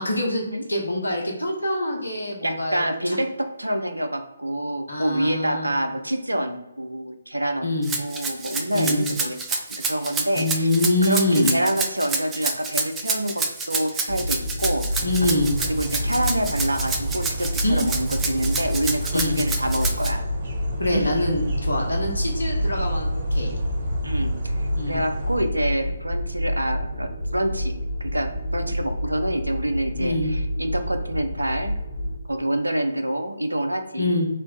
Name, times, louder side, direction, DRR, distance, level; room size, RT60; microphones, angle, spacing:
voice 1, 0.0-2.8 4.9-5.7 7.6-7.9 8.7-9.1 10.3-11.6 15.0-15.5 17.6-17.8 19.1-19.4 20.8-23.6 24.7-25.0 30.0-30.3 34.0-34.3, left 1 dB, 75° left, 0 dB, 1.0 m, -24 dB
voice 2, 2.4-7.7 8.0-10.7 11.0-15.1 15.6-20.2 20.9-21.1 24.0-31.8 32.3-34.1, right 1 dB, 80° right, 7 dB, 0.5 m, -27 dB
Rattle (instrument), 7.8-20.1, right 4 dB, 10° right, 0.4 m, -28 dB
sound 1, 14.1-32.2, equal, 50° left, 0.7 m, -28 dB
sound 2, 14.9-25.4, right 2 dB, 45° right, 0.7 m, -34 dB
3.2 x 2.2 x 3.9 m, 0.95 s
figure-of-eight pair, 140°, 0 cm